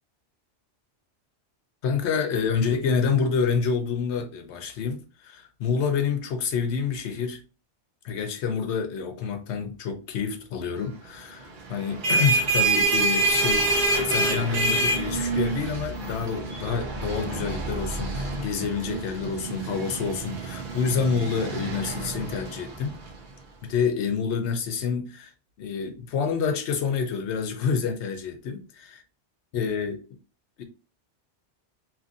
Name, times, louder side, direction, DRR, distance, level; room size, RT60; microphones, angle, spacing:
voice 1, 1.8-7.4 8.0-23.0 23.6-25.3 25.6-28.6 29.5-30.0 30.6-30.7, left 6 dB, 75° left, 0.9 m, -28 dB
sound 1, 11.8-23.1, right 2 dB, 50° right, 0.7 m, -27 dB
2.8 x 2.5 x 2.5 m
omnidirectional pair, 1.2 m